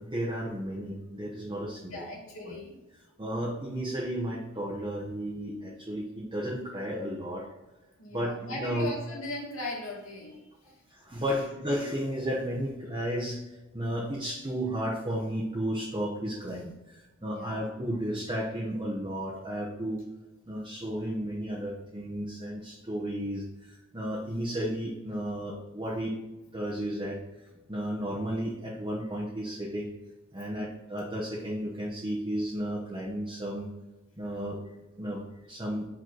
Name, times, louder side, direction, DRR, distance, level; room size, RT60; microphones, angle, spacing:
voice 1, 0.0-2.1 2.4-2.6 3.2-7.5 8.1-8.9 10.9-13.4 13.7-20.0 20.5-26.2 26.5-27.2 27.7-29.9 30.3-33.7 34.2-34.6 35.0-35.9, equal, 25° right, -5 dB, 1.1 m, -33 dB
voice 2, 1.6-2.8 8.0-11.4 17.2-17.7, left 1 dB, 85° left, -4 dB, 2.3 m, -39 dB
5.8 x 5.2 x 3.9 m, 1.1 s
head